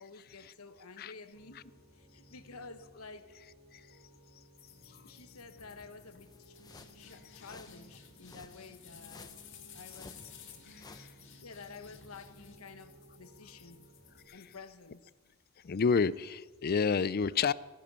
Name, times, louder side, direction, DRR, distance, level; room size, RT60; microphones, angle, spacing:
voice 1, 0.0-3.4 4.8-6.6 6.9-9.4 9.7-10.4 11.4-13.9 14.3-15.1, left 4 dB, 90° left, 1.2 m, -51 dB
Piano, 1.3-14.2, equal, 55° right, 4.9 m, -60 dB
sound 1, 4.6-15.1, left 6 dB, 60° left, 2.2 m, -55 dB
sound 2, 6.2-11.2, left 3 dB, 20° left, 0.8 m, -56 dB
voice 2, 10.7-11.1 14.3-14.4 15.6-17.5, left 5 dB, 45° left, 0.4 m, -30 dB
17.0 x 10.5 x 6.8 m
head